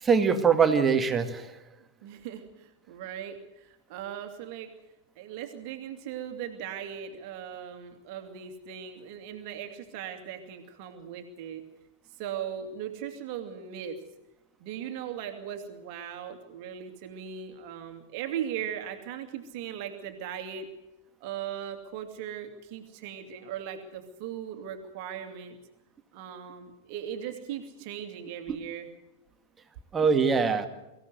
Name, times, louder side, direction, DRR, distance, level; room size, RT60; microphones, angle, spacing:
voice 1, 0.0-1.5 28.5-28.6 29.9-30.7, right 6 dB, 20° right, 7 dB, 2.1 m, -23 dB
voice 2, 2.0-4.7 5.2-11.7 12.2-14.0 14.6-20.7 21.2-25.6 26.1-28.9, right 9 dB, 45° right, 5 dB, 2.5 m, -38 dB
24.5 x 16.0 x 8.0 m, 0.95 s
figure-of-eight pair, 90°, 0 cm